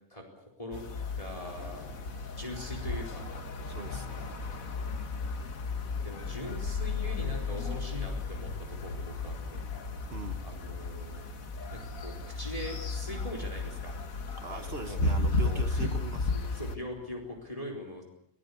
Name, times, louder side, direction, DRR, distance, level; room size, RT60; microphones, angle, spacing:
voice 1, 0.1-0.8 1.2-1.9 2.4-3.2 6.0-9.6 10.4-11.2 11.7-14.0 14.5-15.0 15.4-15.9 16.3-18.0, equal, 25° left, 1 dB, 4.3 m, -42 dB
sound 1, 0.7-16.8, left 3 dB, 70° left, 2.0 m, -34 dB
sound 2, 1.2-17.5, right 2 dB, 75° right, 5.8 m, -50 dB
voice 2, 3.6-4.4 10.1-10.5 14.4-16.5, right 3 dB, 45° right, 9 dB, 1.6 m, -41 dB
25.5 x 17.5 x 8.4 m, 0.73 s
omnidirectional pair, 1.5 m